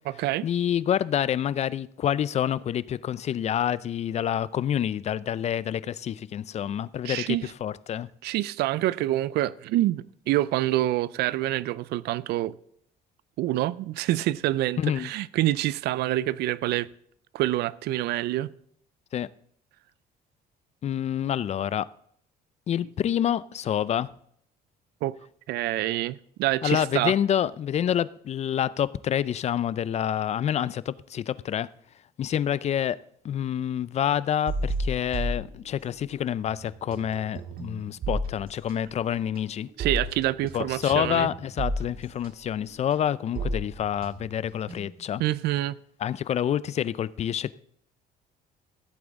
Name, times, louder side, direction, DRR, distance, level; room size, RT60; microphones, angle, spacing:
voice 1, 0.4-8.1 14.8-15.1 19.1-19.3 20.8-21.9 22.7-24.1 26.6-31.7 32.2-33.0 33.2-39.7 40.5-45.2 46.0-47.5, left 10 dB, 40° left, 0.4 m, -27 dB
voice 2, 7.0-7.4 8.2-12.5 13.4-16.9 17.3-18.5 25.0-25.2 25.5-27.1 39.8-41.3 45.2-45.7, right 15 dB, 75° right, 0.4 m, -26 dB
sound 1, 34.5-36.2 36.5-45.1, right 1 dB, 60° right, 1.9 m, -34 dB
15.0 x 8.5 x 3.6 m
cardioid pair, 110°, 17 cm